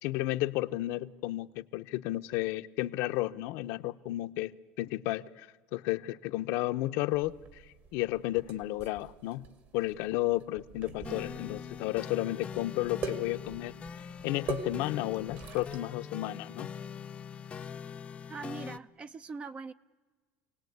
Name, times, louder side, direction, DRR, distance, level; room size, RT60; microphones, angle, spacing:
voice 1, 0.0-4.5 4.8-7.6 7.9-9.5 9.7-13.8 14.2-16.7, left 17 dB, 65° left, 9 dB, 0.8 m, -32 dB
sound 1, 7.1-15.8, right 5 dB, 45° right, 2.2 m, -43 dB
sound 2, 11.0-18.8, left 7 dB, 25° left, 0.7 m, -42 dB
voice 2, 18.3-19.7, right 4 dB, 25° right, 13 dB, 0.7 m, -41 dB
27.0 x 18.5 x 9.4 m, 1.4 s
cardioid pair, 145°, 5 cm